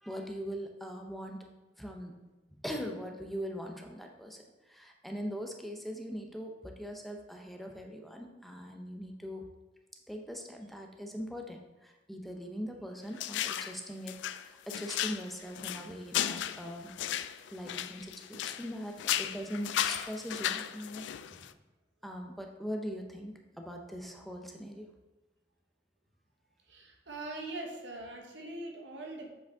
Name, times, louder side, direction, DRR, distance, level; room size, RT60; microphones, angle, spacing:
voice 1, 0.0-1.5 1.8-2.2 2.5-9.5 10.1-16.9 17.5-21.4 22.0-24.9, equal, ahead, 2 dB, 0.6 m, -41 dB
sound 1, 13.2-13.8 14.1-18.7 19.0-21.5, left 11 dB, 85° left, 0.3 m, -35 dB
voice 2, 26.7-29.3, right 2 dB, 85° right, 1 dB, 1.3 m, -42 dB
7.6 x 5.1 x 3.5 m, 1.1 s
head